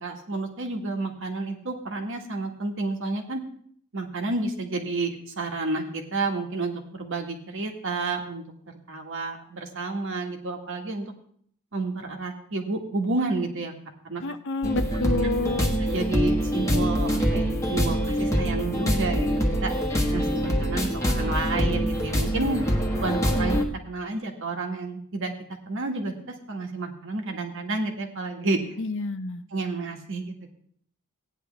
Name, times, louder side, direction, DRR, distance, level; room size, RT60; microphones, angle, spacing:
voice 1, 0.0-3.4 3.9-8.4 8.9-11.1 11.7-13.7 14.0-14.2 15.9-19.3 19.6-19.7 20.1-22.6 22.9-25.3 25.7-26.1 26.5-28.6 29.5-30.5, right 3 dB, 60° right, 3 dB, 1.8 m, -30 dB
voice 2, 14.2-15.8 28.8-29.4, left 3 dB, 55° left, 11 dB, 0.7 m, -29 dB
sound 1, 14.6-23.6, equal, 15° left, 1.3 m, -24 dB
16.0 x 9.9 x 3.5 m, 0.63 s
head